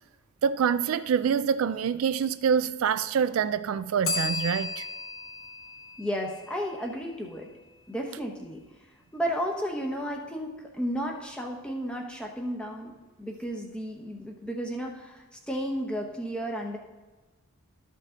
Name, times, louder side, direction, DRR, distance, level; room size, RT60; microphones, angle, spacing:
voice 1, 0.4-4.8, right 7 dB, 75° right, 0.3 m, -26 dB
Bell, 4.0-6.9, left 3 dB, 80° left, 1.4 m, -34 dB
voice 2, 6.0-7.5 7.9-8.6 9.1-12.9 13.2-16.8, equal, 5° left, 0.9 m, -33 dB
12.5 x 5.5 x 3.7 m
head